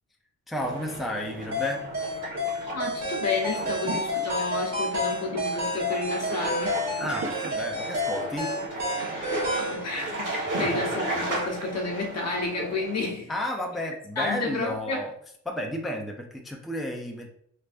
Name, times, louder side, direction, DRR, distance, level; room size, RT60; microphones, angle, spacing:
voice 1, 0.5-1.9 7.0-8.5 10.5-10.8 13.3-15.1 15.5-17.3, left 1 dB, ahead, 0.5 m, -32 dB
sound 1, 0.6-13.1, right 1 dB, 80° right, 1.4 m, -35 dB
sound 2, 1.5-9.8, left 1 dB, 60° right, 1.4 m, -30 dB
voice 2, 2.7-6.8 9.1-13.3 14.2-15.1, left 3 dB, 60° left, 0.9 m, -31 dB
3.3 x 3.3 x 2.5 m
wide cardioid pair, 115°, 31 cm